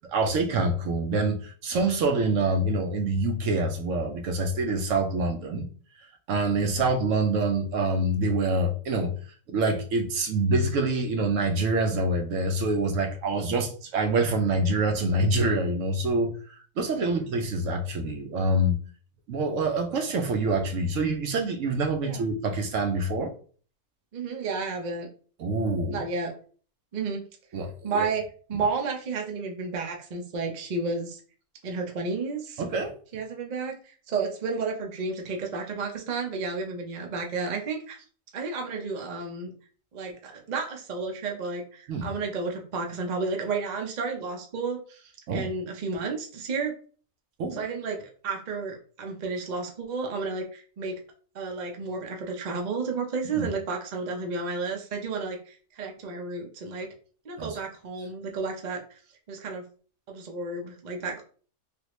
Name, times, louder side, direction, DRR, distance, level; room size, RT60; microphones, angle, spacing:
voice 1, 0.0-5.7 6.3-9.1 9.5-18.8 19.3-23.3 25.4-26.0 27.5-28.1 32.6-32.9 41.9-42.1 45.3-45.5 47.4-47.6 53.3-53.5 57.4-57.6, right 2 dB, 70° right, 3 dB, 0.9 m, -26 dB
voice 2, 17.0-17.3 22.0-22.3 24.1-25.1 25.9-26.3 26.9-27.2 27.8-28.2 28.5-31.2 31.6-32.6 33.1-38.0 38.3-39.5 39.9-46.7 47.5-48.0 48.2-51.0 51.3-56.9 57.2-59.0 59.3-59.6 60.1-61.2, right 4 dB, 50° right, 2 dB, 0.5 m, -32 dB
3.4 x 2.3 x 3.0 m, 0.42 s
omnidirectional pair, 1.5 m